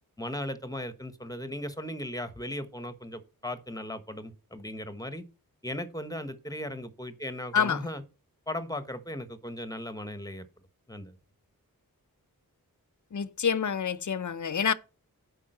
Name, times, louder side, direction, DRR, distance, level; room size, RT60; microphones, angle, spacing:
voice 1, 0.2-5.2 5.6-8.0 8.5-10.4 10.9-11.2, left 1 dB, 10° left, 1.3 m, -37 dB
voice 2, 7.5-7.9 13.1-14.7, left 7 dB, 55° left, 0.8 m, -27 dB
8.5 x 5.3 x 6.6 m
wide cardioid pair, 60°, 36 cm